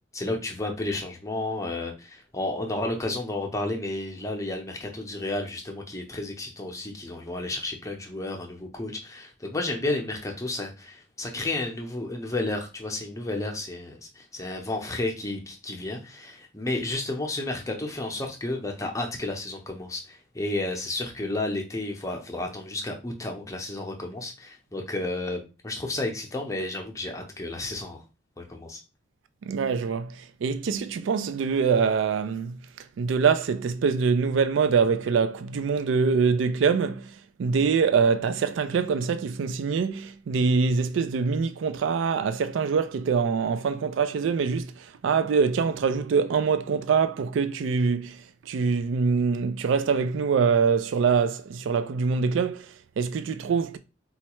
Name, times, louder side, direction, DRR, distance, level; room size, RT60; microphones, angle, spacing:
voice 1, 0.1-28.0 28.4-28.8, left 2 dB, 15° left, 0.7 m, -32 dB
voice 2, 29.4-32.6 33.0-53.8, right 5 dB, 80° right, 0.3 m, -24 dB
4.2 x 2.4 x 2.9 m
head